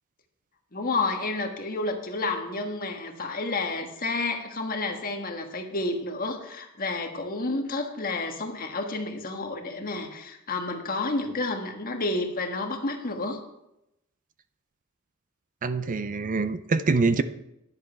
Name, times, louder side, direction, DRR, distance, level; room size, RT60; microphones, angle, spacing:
voice 1, 0.7-13.4, left 2 dB, 45° left, 4 dB, 1.5 m, -30 dB
voice 2, 15.6-17.2, right 4 dB, 40° right, 13 dB, 0.5 m, -24 dB
10.5 x 7.7 x 5.7 m, 0.86 s
head